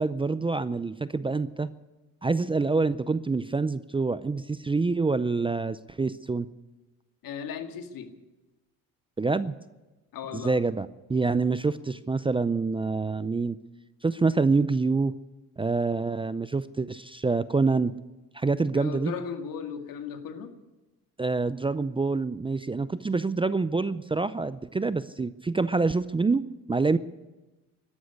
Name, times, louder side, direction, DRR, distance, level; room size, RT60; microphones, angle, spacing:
voice 1, 0.0-1.7 2.2-6.5 9.2-9.6 10.3-13.6 14.0-15.1 15.6-17.9 18.3-19.1 21.2-27.0, right 4 dB, 15° right, 15 dB, 0.5 m, -26 dB
voice 2, 7.2-8.1 10.1-10.6 18.7-20.6, left 7 dB, 65° left, 6 dB, 2.2 m, -36 dB
12.5 x 12.0 x 9.7 m, 1.1 s
cardioid pair, 90°, 36 cm